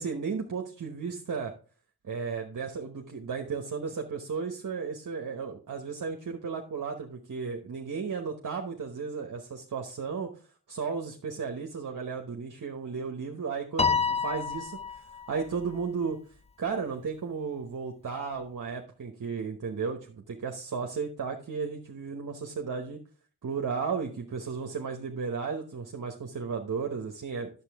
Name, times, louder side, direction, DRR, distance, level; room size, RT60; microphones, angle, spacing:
voice 1, 0.0-1.5 2.0-10.3 10.7-13.9 14.2-14.8 15.3-16.2 16.6-23.0 23.4-27.5, right 5 dB, 50° right, 3 dB, 1.1 m, -34 dB
Piano, 13.8-15.3, left 5 dB, 15° left, 0.5 m, -28 dB
9.7 x 7.1 x 3.5 m, 0.39 s
wide cardioid pair, 100°, 38 cm